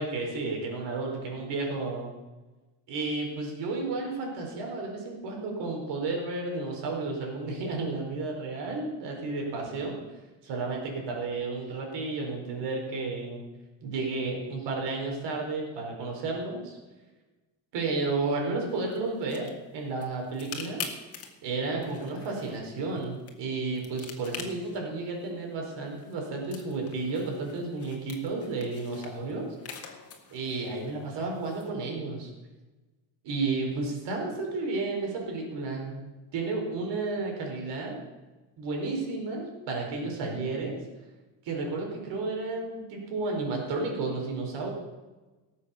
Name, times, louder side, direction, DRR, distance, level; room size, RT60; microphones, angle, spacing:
voice 1, 0.0-2.1 2.9-10.0 10.4-13.4 13.8-16.8 17.7-19.5 19.7-20.8 21.4-29.5 30.3-32.3 33.2-36.0 36.3-37.9 38.6-40.8 41.4-44.7, right 3 dB, 70° right, 1 dB, 4.6 m, -32 dB
sound 1, 18.7-31.7, left 6 dB, 35° left, 1.8 m, -46 dB
17.5 x 7.6 x 7.1 m, 1.2 s
cardioid pair, 180°, 44 cm